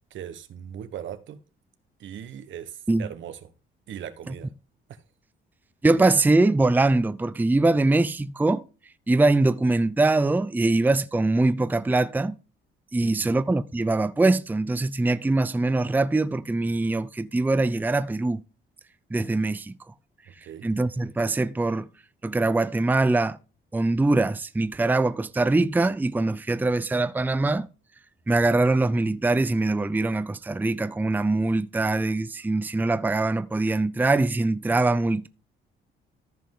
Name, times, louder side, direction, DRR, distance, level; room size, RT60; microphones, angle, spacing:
voice 1, 0.0-1.4 2.0-3.4 3.9-4.5 4.9-5.0 13.0-13.4 20.3-20.7, right 9 dB, 70° right, 1.2 m, -39 dB
voice 2, 5.8-8.6 9.1-12.3 12.9-18.4 19.1-19.7 20.6-21.9 22.2-23.4 23.7-27.7 28.3-35.3, right 2 dB, 10° right, 0.5 m, -23 dB
14.0 x 5.3 x 3.7 m
cardioid pair, 90°, 20 cm